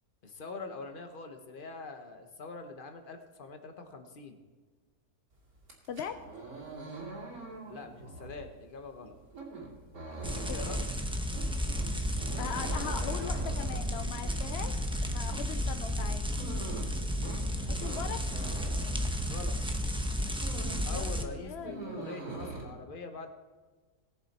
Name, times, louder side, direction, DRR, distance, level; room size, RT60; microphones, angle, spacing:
voice 1, 0.2-4.4 7.7-9.1 10.1-10.8 17.5-18.0 19.2-19.5 19.8-19.9 20.8-23.3, left 3 dB, 35° left, 6 dB, 1.1 m, -44 dB
sound 1, 5.6-19.6 20.0-21.0 21.2-22.6, right 3 dB, 70° right, 3.1 m, -43 dB
sound 2, 10.2-21.2, equal, 5° right, 0.6 m, -33 dB
voice 2, 12.4-14.7 15.0-16.2 17.7-18.2 20.9-21.9, left 7 dB, 65° left, 8 dB, 0.6 m, -40 dB
19.5 x 6.9 x 4.2 m, 1.3 s
omnidirectional pair, 1.6 m